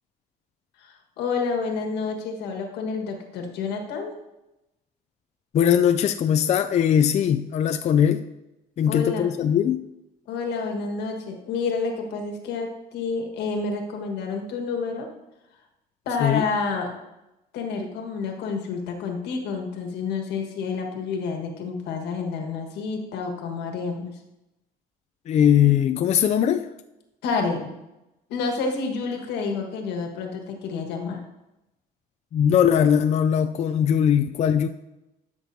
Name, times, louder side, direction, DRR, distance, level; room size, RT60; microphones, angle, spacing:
voice 1, 0.8-4.1 8.9-9.3 10.3-15.1 16.0-16.9 17.5-24.2 27.2-27.7 28.3-31.2, left 4 dB, 85° left, 3 dB, 1.5 m, -29 dB
voice 2, 5.5-8.2 8.8-9.8 16.2-16.4 25.3-26.7 32.3-34.7, left 9 dB, 40° left, 8 dB, 0.4 m, -20 dB
13.0 x 6.0 x 2.7 m, 0.94 s
cardioid pair, 110°, 17 cm